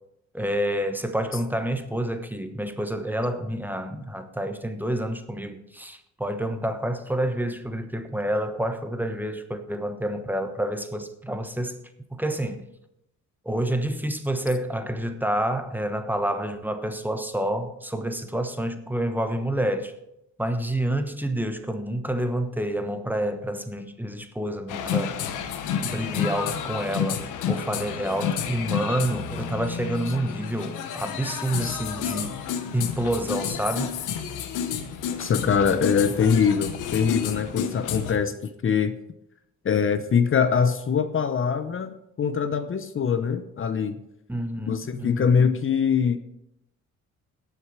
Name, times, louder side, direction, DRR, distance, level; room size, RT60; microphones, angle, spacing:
voice 1, 0.3-11.8 12.1-12.7 13.4-19.9 20.4-25.2 25.7-32.4 32.7-34.0 44.3-45.3, right 1 dB, 5° right, 1.1 m, -28 dB
sound 1, 24.7-38.1, left 7 dB, 90° left, 1.2 m, -30 dB
voice 2, 35.2-38.4 38.6-39.0 39.6-44.0 44.7-46.2, left 6 dB, 45° left, 0.8 m, -23 dB
17.5 x 6.8 x 4.7 m
cardioid pair, 90°, 30 cm